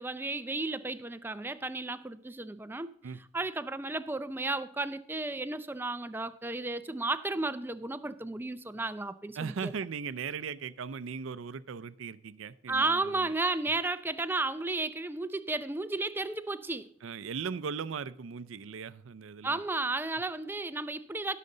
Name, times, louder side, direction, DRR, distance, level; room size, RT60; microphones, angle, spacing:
voice 1, 0.0-2.9 3.3-9.7 12.7-16.9 19.4-21.4, right 2 dB, 10° right, 12 dB, 0.4 m, -33 dB
voice 2, 9.4-13.3 17.0-19.6, right 6 dB, 80° right, 17 dB, 0.5 m, -38 dB
16.0 x 6.6 x 3.8 m, 0.70 s
head